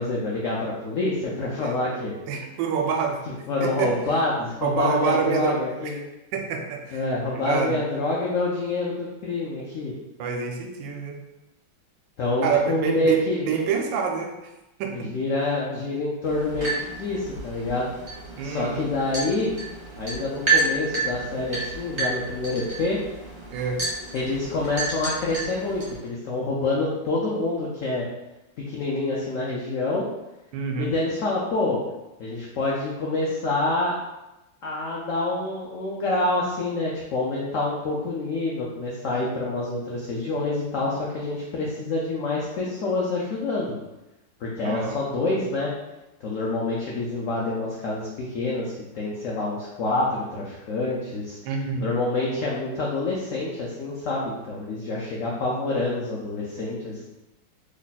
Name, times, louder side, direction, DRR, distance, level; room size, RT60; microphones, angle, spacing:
voice 1, 0.0-2.1 3.5-6.0 6.9-9.9 12.2-13.5 14.9-17.9 18.4-19.5 20.0-23.0 24.1-28.0 28.6-30.0 30.8-31.8 32.2-33.9 34.6-43.8 44.4-45.7 46.2-51.4 51.8-57.0, left 2 dB, 90° left, -4 dB, 0.6 m, -27 dB
voice 2, 2.3-3.2 3.6-4.0 4.6-5.5 5.8-5.9 6.3-7.0 7.3-7.8 10.2-11.2 12.4-13.2 13.4-14.5 14.8-15.1 18.4-18.9 23.5-23.9 30.5-30.9 44.6-45.0 51.4-51.9 56.6-56.7, right 6 dB, 80° right, 3 dB, 1.3 m, -27 dB
sound 1, 16.2-26.0, right 3 dB, 45° right, 1.4 m, -30 dB
3.2 x 2.2 x 4.0 m, 0.98 s
omnidirectional pair, 2.0 m